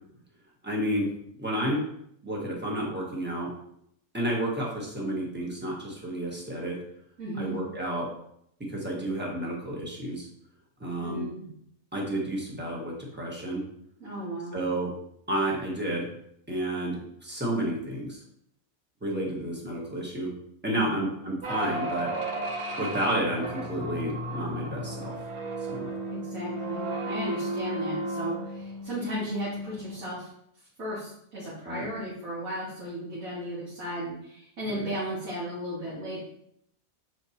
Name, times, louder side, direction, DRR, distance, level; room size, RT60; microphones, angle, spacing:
voice 1, 0.6-1.1 1.4-1.8 2.2-3.5 4.1-6.8 7.4-8.1 8.7-10.3 10.8-11.3 11.9-13.6 14.5-14.9 15.3-16.1 16.5-18.2 19.0-20.3 20.6-22.1 22.8-25.1 25.7-25.9 31.6-31.8, right 1 dB, 10° right, -3 dB, 1.3 m, -31 dB
voice 2, 7.2-7.6 11.0-11.5 14.0-14.6 20.7-21.0 26.1-30.3 30.8-36.2, equal, 80° right, -9 dB, 2.4 m, -35 dB
sound 1, 21.4-30.2, right 1 dB, 40° right, 0.4 m, -34 dB
7.1 x 4.7 x 2.8 m, 0.72 s
omnidirectional pair, 1.4 m